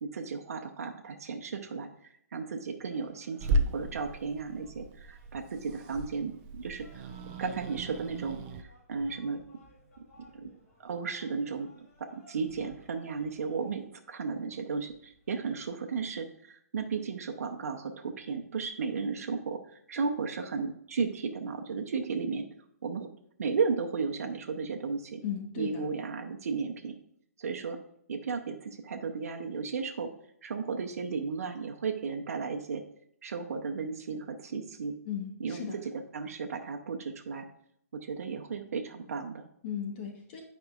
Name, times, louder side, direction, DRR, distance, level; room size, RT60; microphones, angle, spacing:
voice 1, 0.0-7.1 7.4-9.4 10.3-10.5 10.8-22.4 22.8-23.1 23.4-25.2 25.6-26.9 27.4-27.8 28.1-30.1 30.4-32.8 33.2-35.0 35.4-35.8 36.1-37.5 37.9-39.5, right 5 dB, 65° right, 3 dB, 0.8 m, -34 dB
sound 1, 2.8-15.7, left 1 dB, 65° left, 2.8 m, -59 dB
Growling / Hiss, 3.4-8.6, right 1 dB, 35° right, 0.5 m, -35 dB
voice 2, 25.2-25.8 35.0-35.8 39.6-40.4, left 8 dB, 40° left, 2 dB, 1.2 m, -36 dB
10.5 x 4.8 x 2.5 m, 0.70 s
hypercardioid pair, 130°, 9 cm